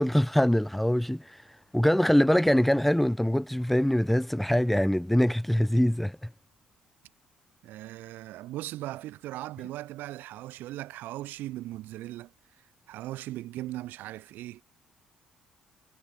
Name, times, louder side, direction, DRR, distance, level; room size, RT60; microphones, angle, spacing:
voice 1, 0.0-1.4 1.7-6.2, equal, 5° left, 0.7 m, -23 dB
voice 2, 7.6-12.3 12.9-14.6, right 15 dB, 65° right, 3.9 m, -38 dB
figure-of-eight pair, 45°, 4 cm